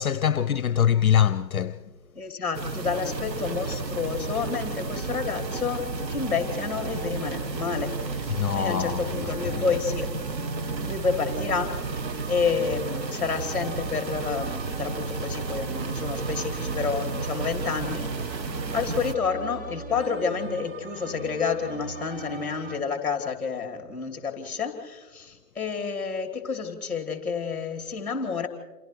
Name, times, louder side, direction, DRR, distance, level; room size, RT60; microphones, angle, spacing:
voice 1, 0.0-1.9 8.3-9.2 9.5-9.6, left 9 dB, 60° left, 0.7 m, -23 dB
voice 2, 2.1-10.1 10.8-11.7 12.3-18.4 18.7-28.5, left 5 dB, ahead, 2.6 m, -29 dB
sound 1, 2.5-19.2, right 4 dB, 85° right, 1.4 m, -33 dB
sound 2, 2.8-22.8, right 4 dB, 35° right, 0.8 m, -39 dB
28.5 x 28.0 x 3.2 m
figure-of-eight pair, 140°, 49 cm